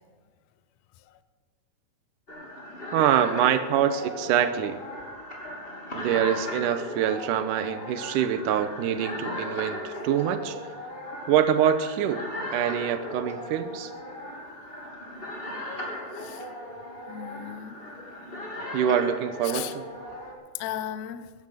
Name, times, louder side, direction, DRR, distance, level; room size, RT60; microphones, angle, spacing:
sound 1, 2.3-20.3, left 1 dB, 20° left, 2.8 m, -37 dB
voice 1, 2.9-4.8 5.9-10.6 11.3-13.9 18.7-19.8, right 9 dB, 90° right, 2.4 m, -25 dB
voice 2, 15.2-16.7 17.1-18.2 19.4-19.7 20.3-21.3, left 11 dB, 70° left, 1.8 m, -38 dB
15.0 x 10.5 x 7.8 m
omnidirectional pair, 3.6 m